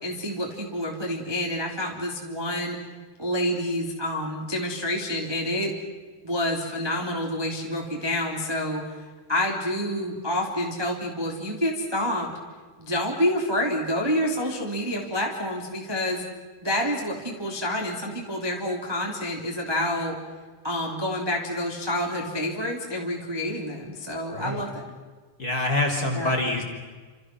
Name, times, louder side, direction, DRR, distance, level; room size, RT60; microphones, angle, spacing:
voice 1, 0.0-2.8 3.2-5.7 6.2-8.8 9.3-12.3 12.8-16.2 16.6-20.1 20.6-24.9 26.1-26.3, left 1 dB, 5° right, -1 dB, 1.9 m, -28 dB
voice 2, 24.3-24.6 25.4-26.6, left 2 dB, 20° left, 2 dB, 3.3 m, -26 dB
29.5 x 27.5 x 6.2 m, 1.4 s
omnidirectional pair, 5.7 m